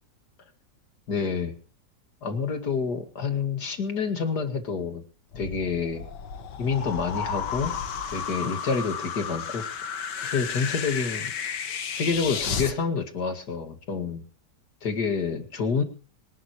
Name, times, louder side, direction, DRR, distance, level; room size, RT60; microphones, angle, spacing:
voice 1, 1.1-1.5 2.2-5.0 5.4-6.1 6.6-7.8 8.1-9.6 10.2-11.3 12.0-14.2 14.8-15.8, left 5 dB, 70° left, 8 dB, 2.7 m, -28 dB
sound 1, 5.3-12.7, left 7 dB, 85° left, 1.9 m, -32 dB
25.0 x 11.5 x 3.0 m, 0.35 s
omnidirectional pair, 1.8 m